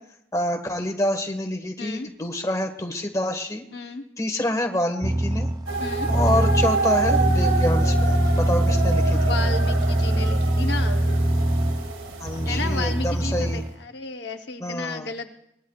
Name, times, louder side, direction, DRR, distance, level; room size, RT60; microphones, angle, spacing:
voice 1, 0.3-3.6 4.2-5.5 6.1-9.2 12.2-13.6 14.6-15.1, left 1 dB, 15° left, 6 dB, 1.4 m, -27 dB
voice 2, 1.8-2.1 3.7-4.0 5.8-6.1 9.1-11.0 12.5-15.3, left 3 dB, 60° left, 5 dB, 0.9 m, -33 dB
sound 1, 5.0-13.7, right 1 dB, 20° right, 0.5 m, -22 dB
sound 2, 5.7-13.5, right 3 dB, 90° right, 2.1 m, -28 dB
23.5 x 20.0 x 2.4 m, 0.78 s
head